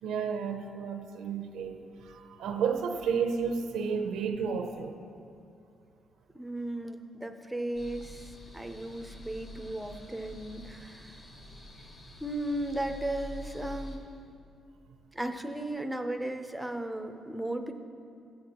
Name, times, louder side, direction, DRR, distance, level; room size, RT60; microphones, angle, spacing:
voice 1, 0.0-5.0, right 6 dB, 90° right, 6 dB, 0.5 m, -32 dB
voice 2, 6.3-11.2 12.2-14.0 15.1-17.7, right 1 dB, 5° right, 5 dB, 0.5 m, -35 dB
sound 1, 7.7-14.0, left 1 dB, 35° left, 1.1 m, -46 dB
13.5 x 7.7 x 2.9 m, 2.5 s
cardioid pair, 145°, 0 cm